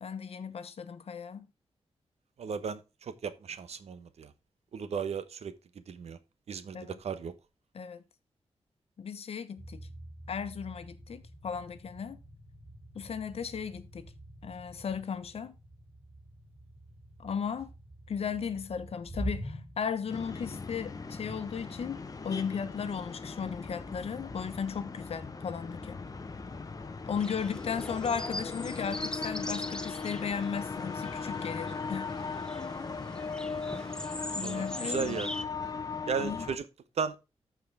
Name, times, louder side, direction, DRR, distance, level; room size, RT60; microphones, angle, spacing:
voice 1, 0.0-1.5 6.7-7.0 7.7-8.0 9.0-9.9 10.3-12.2 12.9-14.1 14.4-15.5 17.2-17.7 18.1-22.0 22.2-26.0 27.1-32.1 34.3-35.2 35.6-35.7 36.2-36.5, left 6 dB, 70° left, 1.1 m, -36 dB
voice 2, 2.4-2.8 3.2-4.3 4.7-5.5 5.9-6.2 6.5-6.8 7.0-7.3 34.4-35.3 36.1-36.6 37.0-37.2, right 6 dB, 80° right, 1.0 m, -34 dB
sound 1, 9.6-28.2, right 1 dB, 15° right, 4.0 m, -47 dB
sound 2, 20.1-36.6, left 4 dB, 35° left, 0.9 m, -38 dB
sound 3, 27.2-35.4, left 1 dB, 5° left, 0.7 m, -42 dB
14.0 x 4.7 x 3.5 m
wide cardioid pair, 105°, 11 cm